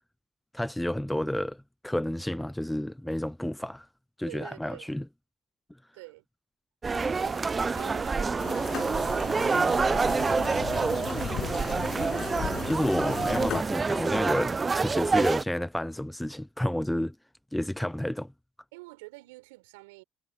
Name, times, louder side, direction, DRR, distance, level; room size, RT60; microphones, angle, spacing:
voice 1, 0.5-3.9 4.2-5.0 12.7-17.1 17.5-18.3, left 1 dB, 5° left, 0.8 m, -30 dB
voice 2, 4.3-4.9 5.9-6.2 6.9-10.1 10.5-12.0 18.7-20.0, right 25 dB, 85° right, 7.3 m, -48 dB
sound 1, 6.8-15.4, right 4 dB, 30° right, 0.6 m, -27 dB
sound 2, 8.4-13.6, left 10 dB, 55° left, 7.8 m, -37 dB
hypercardioid pair, 65°, 0 cm